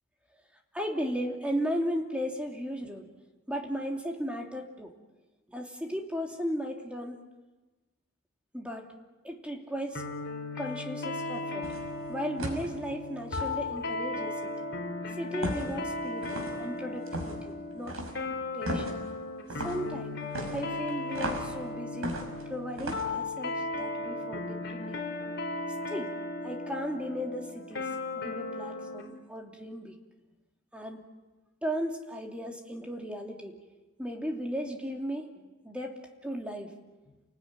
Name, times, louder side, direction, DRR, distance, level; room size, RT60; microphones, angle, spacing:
voice 1, 0.7-3.1 3.5-4.9 5.5-7.2 8.5-8.9 9.2-10.0 10.6-11.7 12.1-14.5 15.2-16.3 16.6-18.0 18.5-19.0 19.6-20.2 20.5-22.1 22.5-25.0 25.9-26.2 26.4-30.0 30.7-31.0 31.6-33.6 34.0-36.8, equal, 5° right, 1 dB, 2.9 m, -36 dB
sound 1, 9.9-29.1, left 2 dB, 50° left, 4.9 m, -36 dB
sound 2, 11.6-11.9 12.4-12.7 13.3-13.5 15.4-15.8 16.2-16.6 17.1-17.4 17.9-18.2 18.7-19.0 19.5-19.8 20.3-21.5 22.0-22.4 22.8-23.1, equal, 75° right, 5.7 m, -35 dB
29.5 x 19.5 x 9.6 m, 1.2 s
head